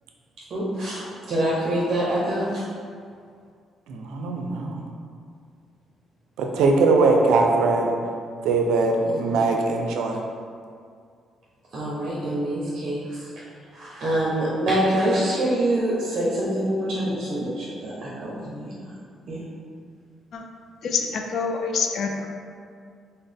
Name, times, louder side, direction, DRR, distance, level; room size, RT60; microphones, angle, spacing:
voice 1, 0.5-2.6 9.0-9.4 11.7-13.2 13.7-18.9 19.3-19.4, right 1 dB, 55° right, -7 dB, 0.7 m, -25 dB
voice 2, 3.9-4.8 6.4-8.0 8.4-10.2, right 3 dB, 90° right, 2 dB, 0.4 m, -21 dB
voice 3, 20.8-22.3, left 5 dB, 70° left, 3 dB, 0.4 m, -26 dB
4.1 x 2.0 x 3.4 m, 2.2 s
cardioid pair, 90°, 0 cm